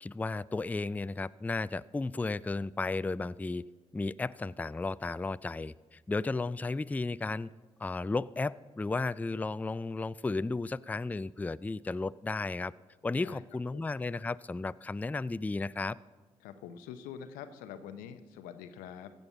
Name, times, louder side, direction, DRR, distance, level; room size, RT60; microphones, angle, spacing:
voice 1, 0.0-3.6 3.9-7.5 7.8-12.7 13.0-16.0, left 3 dB, 10° left, 18 dB, 0.3 m, -34 dB
voice 2, 16.4-19.1, left 8 dB, 90° left, 11 dB, 0.6 m, -45 dB
15.5 x 5.4 x 7.3 m, 1.3 s
hypercardioid pair, 40°, 14 cm